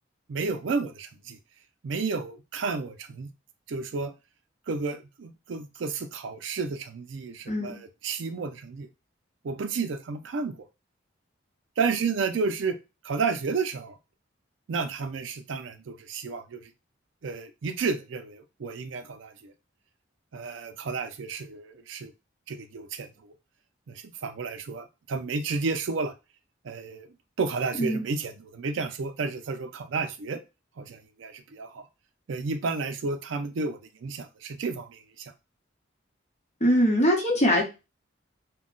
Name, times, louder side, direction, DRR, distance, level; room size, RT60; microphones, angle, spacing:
voice 1, 0.3-1.4 1.8-3.3 3.7-4.1 4.7-8.9 9.4-10.6 11.8-12.8 13.0-14.0 14.7-16.6 17.2-19.5 20.3-22.1 22.5-23.3 23.9-26.1 26.6-27.1 27.4-30.4 30.8-31.8 32.3-35.3, right 4 dB, 75° right, 0.4 m, -31 dB
voice 2, 36.6-37.6, equal, 35° left, 0.9 m, -22 dB
2.2 x 2.1 x 3.7 m
head